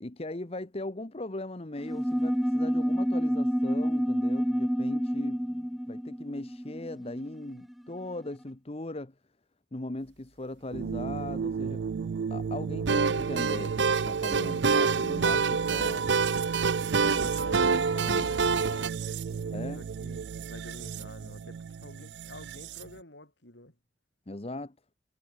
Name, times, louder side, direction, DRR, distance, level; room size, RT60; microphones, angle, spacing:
voice 1, 0.0-9.1 9.7-11.8 12.3-16.1 17.0-18.3 19.5-19.8 24.3-24.7, left 2 dB, 35° left, 1.1 m, -39 dB
sound 1, 1.8-7.7, equal, ahead, 0.8 m, -29 dB
sound 2, 10.7-23.0, right 6 dB, 65° right, 0.3 m, -34 dB
sound 3, 12.9-18.9, right 5 dB, 80° right, 0.8 m, -27 dB
voice 2, 17.4-23.7, left 1 dB, 75° left, 5.8 m, -49 dB
head